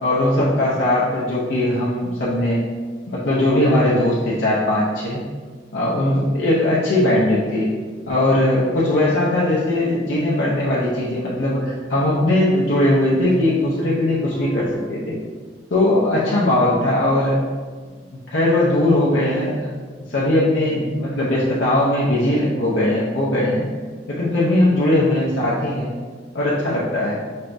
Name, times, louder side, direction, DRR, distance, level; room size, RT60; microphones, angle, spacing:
voice 1, 0.0-2.6 3.1-5.2 5.7-7.7 8.1-15.2 15.7-17.4 18.3-19.7 20.1-23.6 24.1-25.9 26.3-27.2, left 1 dB, 80° left, -7 dB, 0.7 m, -19 dB
sound 1, 13.3-14.9, equal, 10° left, 0.5 m, -35 dB
5.5 x 2.6 x 3.4 m, 1.5 s
head